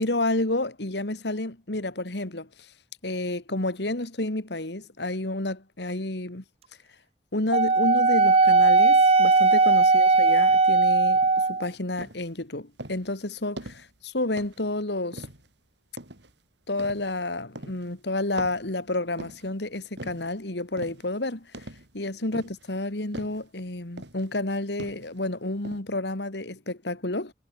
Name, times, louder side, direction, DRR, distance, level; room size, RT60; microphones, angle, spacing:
voice 1, 0.0-2.5 3.0-6.4 7.3-11.2 11.5-15.3 16.7-21.5 21.9-27.3, left 2 dB, 70° left, 2.3 m, -30 dB
Wind instrument woodwind instrument, 7.5-11.7, right 3 dB, 35° right, 0.6 m, -18 dB
sound 1, 11.2-11.5 12.0-12.3 12.8-13.1 13.6-13.9 14.4-14.7 15.1-15.5 16.0-16.3 16.8-17.2 17.6-17.9 18.4-19.5 20.0-20.3 20.8-21.1 21.5-22.0 22.3-22.7 23.1-23.5 24.0-24.3 24.8-25.2 25.6-25.8, right 1 dB, 75° right, 4.6 m, -41 dB
head